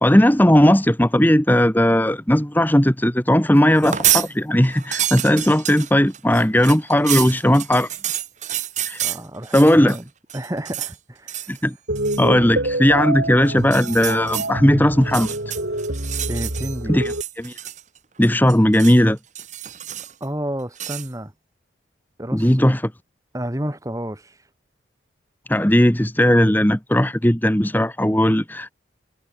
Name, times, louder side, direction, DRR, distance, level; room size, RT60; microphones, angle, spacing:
voice 1, 0.0-7.9 8.9-9.0 9.5-9.9 11.5-11.7 12.2-15.3 16.9-17.5 18.2-19.2 22.3-22.8 25.5-28.7, equal, 10° left, 1.4 m, -17 dB
sound 1, 3.7-4.3 4.6-10.0 10.3-11.0 11.3-11.6 12.0-12.3 13.6-14.5 15.0-16.8 17.1-18.0 18.2-19.0 19.4-20.2 20.8-21.1, right 12 dB, 40° right, 1.3 m, -28 dB
voice 2, 9.0-10.0 10.3-11.6 16.3-16.9 20.2-21.3 22.2-22.7 23.3-24.4, right 1 dB, 15° right, 1.8 m, -30 dB
sound 2, 11.9-17.2, right 1 dB, 65° right, 4.1 m, -27 dB
head